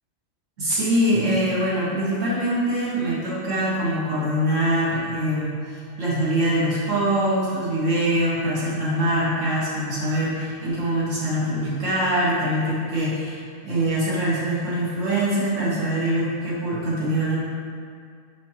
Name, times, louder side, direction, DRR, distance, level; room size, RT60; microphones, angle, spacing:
voice 1, 0.6-17.4, right 1 dB, 65° right, -9 dB, 2.1 m, -23 dB
6.5 x 5.4 x 2.9 m, 2.2 s
omnidirectional pair, 1.4 m